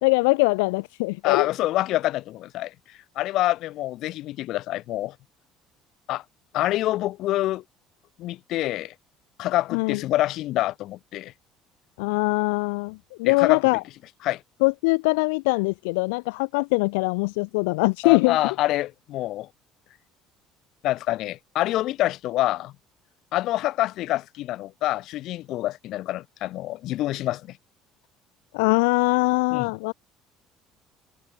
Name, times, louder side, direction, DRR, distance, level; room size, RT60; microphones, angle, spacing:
voice 1, 0.0-1.5 9.7-10.0 12.0-13.8 14.6-18.4 28.5-29.9, left 28 dB, 85° left, 0.5 m, -22 dB
voice 2, 1.2-2.7 3.1-5.1 6.1-6.2 6.5-7.6 8.2-8.9 9.4-11.3 13.2-13.6 14.2-14.4 18.0-19.5 20.8-22.7 23.3-27.5 29.5-29.7, left 15 dB, 65° left, 1.2 m, -26 dB
supercardioid pair, 80°, 0 cm